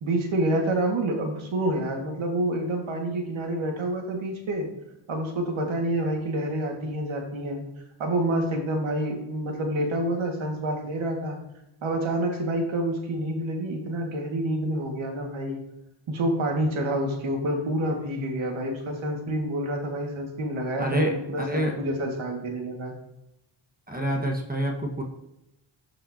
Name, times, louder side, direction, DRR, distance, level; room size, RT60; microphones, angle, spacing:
voice 1, 0.0-4.7 5.1-7.6 8.0-11.4 11.8-15.6 16.1-22.9, right 1 dB, 80° right, 2 dB, 1.9 m, -28 dB
voice 2, 20.8-21.8 23.9-25.0, equal, 20° right, 0 dB, 1.4 m, -27 dB
12.5 x 5.6 x 2.8 m, 0.88 s
cardioid pair, 90°, 47 cm